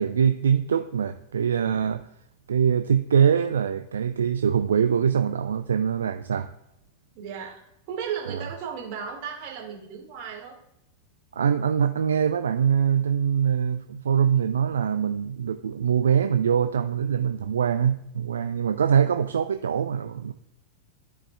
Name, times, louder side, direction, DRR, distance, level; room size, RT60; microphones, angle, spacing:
voice 1, 0.0-2.1 2.5-6.5 8.3-8.5 11.3-20.3, right 7 dB, 70° right, 8 dB, 0.3 m, -23 dB
voice 2, 7.1-7.6 7.9-10.6, right 7 dB, 45° right, 0 dB, 2.1 m, -35 dB
14.0 x 4.8 x 2.3 m, 0.80 s
figure-of-eight pair, 90°, 0 cm